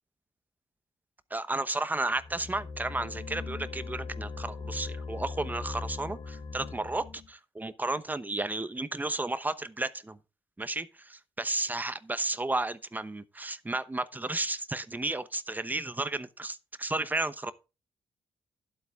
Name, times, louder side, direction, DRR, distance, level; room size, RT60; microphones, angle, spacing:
voice 1, 1.3-10.2 10.6-17.5, right 2 dB, 15° right, 0.9 m, -33 dB
sound 1, 2.1-7.3, left 4 dB, 50° left, 1.7 m, -39 dB
11.0 x 8.3 x 3.6 m
cardioid pair, 80°, 11 cm